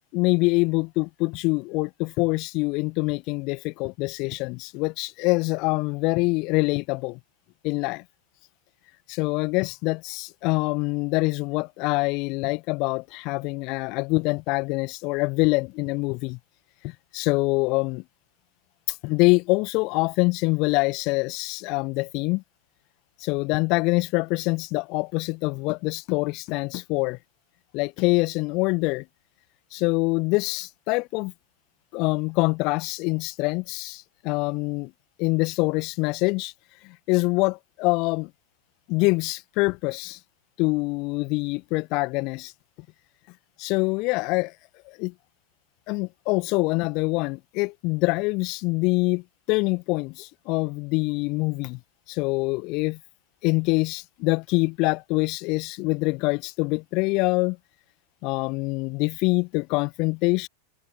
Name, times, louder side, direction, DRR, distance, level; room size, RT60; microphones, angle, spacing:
voice 1, 0.1-7.2 7.6-8.0 9.1-16.4 16.8-18.0 18.9-22.4 23.2-27.2 27.7-29.0 29.7-31.3 31.9-34.9 35.2-36.5 36.8-38.3 38.9-40.2 40.6-42.5 43.6-44.5 44.8-45.1 45.9-51.8 52.1-53.0 53.4-57.6 58.2-60.5, left 26 dB, 40° left, 1.6 m, -25 dB
figure-of-eight pair, 90°, 0 cm